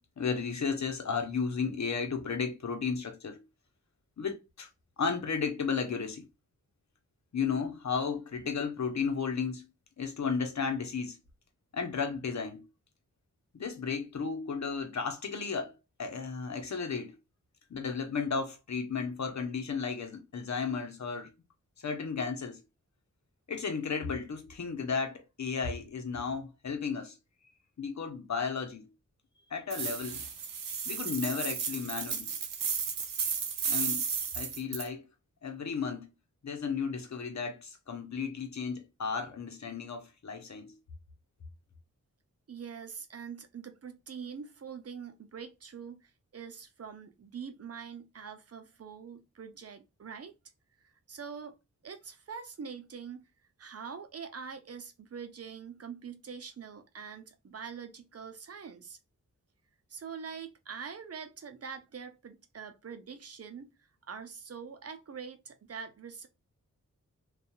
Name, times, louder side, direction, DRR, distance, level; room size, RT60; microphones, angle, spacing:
voice 1, 0.2-3.4 4.2-4.7 5.0-6.2 7.3-9.6 10.0-11.2 11.7-12.6 13.5-15.7 16.0-17.2 17.7-21.3 21.8-22.6 23.5-27.2 27.8-28.9 29.5-30.2 30.9-32.3 33.6-34.0 34.3-35.0 35.4-36.1 36.4-40.7, left 5 dB, 60° left, 0.9 m, -34 dB
sound 1, 29.7-34.9, right 6 dB, 90° right, 0.6 m, -34 dB
voice 2, 42.5-50.3 51.1-51.6 51.8-53.2 53.6-59.0 59.9-63.7 64.1-66.3, right 6 dB, 50° right, 0.6 m, -44 dB
2.7 x 2.4 x 2.3 m
cardioid pair, 45°, 32 cm